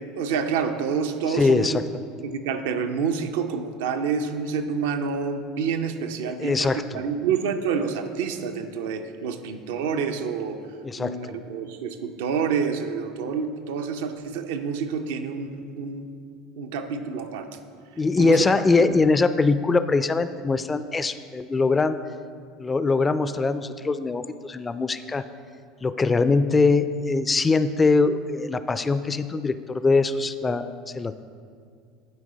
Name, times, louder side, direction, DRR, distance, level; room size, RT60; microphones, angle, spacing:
voice 1, 0.1-1.8 2.2-10.6 11.0-16.1 16.6-17.5 18.2-18.4 18.8-18.9, right 6 dB, 70° right, 7 dB, 0.6 m, -28 dB
voice 2, 1.3-1.8 6.2-6.8 10.8-11.4 18.0-22.0 22.6-25.2 25.8-31.1, left 3 dB, 20° left, 12 dB, 0.4 m, -22 dB
11.0 x 4.8 x 4.0 m, 2.2 s
hypercardioid pair, 75°, 0 cm